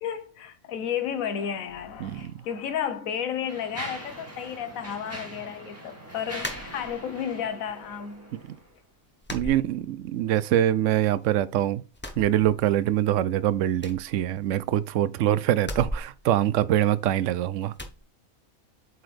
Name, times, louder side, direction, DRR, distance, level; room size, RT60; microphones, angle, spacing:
voice 1, 0.0-8.3 9.4-9.6, left 8 dB, 70° left, 1.2 m, -32 dB
voice 2, 2.0-2.3 9.3-11.8 12.2-17.7, right 12 dB, 70° right, 0.8 m, -24 dB
Mechanisms, 2.2-2.3 3.0-8.7, right 1 dB, 10° right, 2.1 m, -42 dB
sound 1, 6.4-7.3 7.7-8.4 8.6-8.8 9.2-10.4 10.6-11.5 11.9-13.0 13.3-13.4 13.7-14.9 15.6-17.2 17.7-18.0, equal, 10° left, 0.5 m, -39 dB
7.8 x 4.1 x 3.3 m
omnidirectional pair, 1.5 m